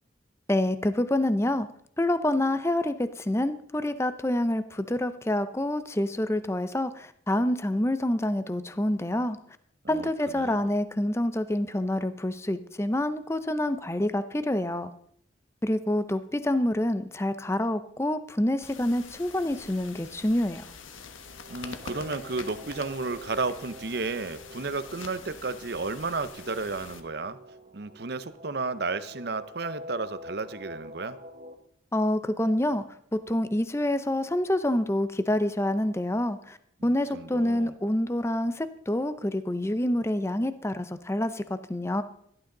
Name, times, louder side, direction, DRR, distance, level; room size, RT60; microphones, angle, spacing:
voice 1, 0.5-1.7 2.0-9.4 9.9-14.9 15.6-20.7 31.9-32.8 33.1-36.6 36.8-42.0, left 1 dB, 15° left, 12 dB, 0.5 m, -27 dB
voice 2, 9.8-10.6 21.5-27.4 27.7-31.2 36.8-37.7, right 3 dB, 55° right, 13 dB, 0.7 m, -33 dB
sound 1, 18.6-27.0, left 5 dB, 85° left, 1.3 m, -45 dB
sound 2, 20.9-31.6, equal, 35° right, 1.1 m, -46 dB
17.0 x 12.0 x 3.9 m, 0.69 s
head